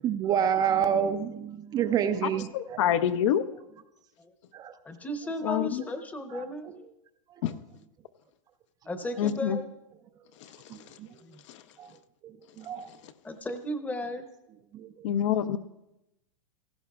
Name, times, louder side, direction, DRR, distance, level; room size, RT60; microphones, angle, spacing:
voice 1, 0.0-3.0 4.5-4.7 5.8-5.9 6.3-6.4 6.7-6.8 7.5-7.6 10.7-11.2 11.8-12.0 12.2-12.9 14.7-15.1, right 8 dB, 20° right, 8 dB, 0.4 m, -29 dB
voice 2, 2.5-3.4 5.4-5.8 7.4-7.5 9.2-9.6 11.5-11.6 15.0-15.6, left 10 dB, 60° left, 11 dB, 0.7 m, -26 dB
voice 3, 4.8-6.7 8.9-9.7 11.2-11.4 13.2-14.2, left 1 dB, 10° left, 8 dB, 0.8 m, -35 dB
16.5 x 15.0 x 2.4 m, 0.90 s
hypercardioid pair, 140°, 17 cm